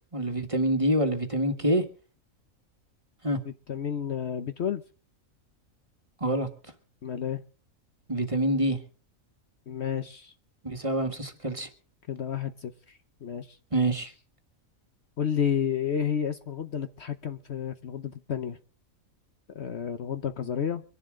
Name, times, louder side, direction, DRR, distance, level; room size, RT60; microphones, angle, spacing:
voice 1, 0.1-1.8 3.2-3.4 6.2-6.5 8.1-8.8 10.6-11.7 13.7-14.1, right 1 dB, 25° right, 5 dB, 1.6 m, -26 dB
voice 2, 3.7-4.8 7.0-7.4 9.7-10.3 12.1-13.6 15.2-18.6 19.5-20.8, left 8 dB, 55° left, 10 dB, 1.0 m, -31 dB
24.5 x 11.0 x 3.7 m, 0.39 s
omnidirectional pair, 1.4 m